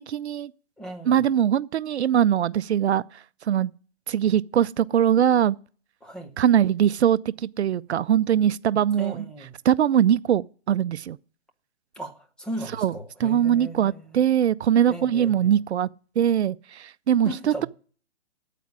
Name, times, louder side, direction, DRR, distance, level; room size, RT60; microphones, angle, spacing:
voice 1, 0.1-0.5 1.1-3.7 4.1-5.6 6.4-9.2 9.6-11.2 12.8-12.9 13.2-15.9 16.2-17.7, right 9 dB, 70° right, 0.5 m, -22 dB
voice 2, 0.8-1.3 6.0-6.3 9.0-9.6 12.0-14.3 14.9-15.6 17.2-17.7, equal, ahead, 0.7 m, -37 dB
9.2 x 8.4 x 9.5 m
hypercardioid pair, 150°, 34 cm